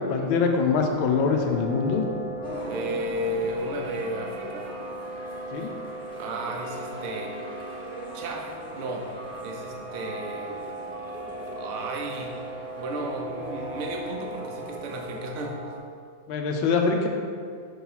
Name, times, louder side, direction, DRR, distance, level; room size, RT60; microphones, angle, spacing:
voice 1, 0.1-2.1 5.5-5.7 16.3-17.1, left 5 dB, 80° left, 3 dB, 1.4 m, -23 dB
sound 1, 0.9-15.8, right 2 dB, 40° right, 1.1 m, -38 dB
sound 2, 2.4-15.3, equal, 5° left, 0.6 m, -43 dB
voice 2, 2.7-4.7 6.2-7.3 8.1-8.5 8.7-9.1 9.4-10.7 11.0-11.1 11.4-12.3 12.8-15.6, right 1 dB, 65° right, 1 dB, 0.7 m, -33 dB
6.2 x 2.9 x 5.5 m, 2.1 s
omnidirectional pair, 2.2 m